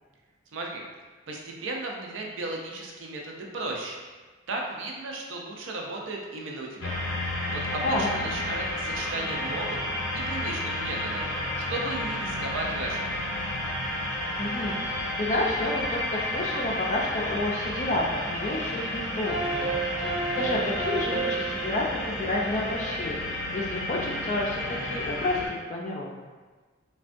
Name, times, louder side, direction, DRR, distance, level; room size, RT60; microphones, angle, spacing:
voice 1, 0.5-0.8 1.3-4.0 4.5-6.9 7.5-9.9 10.1-11.2 11.7-13.2, right 2 dB, 75° right, 0 dB, 0.5 m, -35 dB
sound 1, 6.8-25.5, left 1 dB, 90° left, 0.6 m, -31 dB
voice 2, 14.4-26.1, left 2 dB, 35° left, -2 dB, 0.3 m, -30 dB
sound 2, 19.1-23.3, right 4 dB, 20° right, 0.6 m, -33 dB
3.4 x 2.2 x 2.5 m, 1.3 s
head